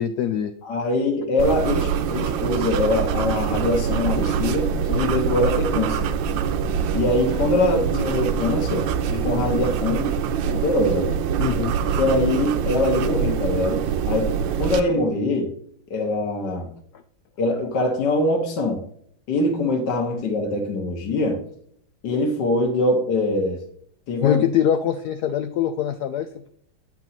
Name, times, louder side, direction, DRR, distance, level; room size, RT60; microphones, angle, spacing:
voice 1, 0.0-0.5 11.4-11.7 24.2-26.5, left 10 dB, 80° left, 8 dB, 0.8 m, -23 dB
voice 2, 0.6-6.0 6.9-10.1 10.5-11.1 12.0-14.3 14.6-15.5 15.9-16.7 17.4-18.8 19.3-21.4 22.0-23.6 24.1-24.4, left 2 dB, 60° left, 1 dB, 1.8 m, -23 dB
sound 1, 1.4-14.8, right 7 dB, 75° right, 1.3 m, -24 dB
8.9 x 4.4 x 4.0 m, 0.64 s
omnidirectional pair, 2.2 m